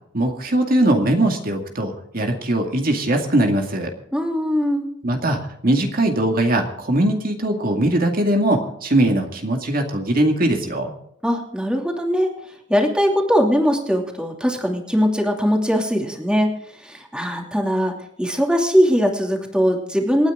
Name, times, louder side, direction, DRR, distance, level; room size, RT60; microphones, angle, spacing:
voice 1, 0.1-3.9 5.0-10.9, right 1 dB, 50° right, 3 dB, 2.2 m, -20 dB
voice 2, 4.1-4.9 11.2-12.3 12.7-16.5 16.8-20.3, equal, 5° right, 1 dB, 2.8 m, -20 dB
28.0 x 9.6 x 3.8 m, 0.74 s
head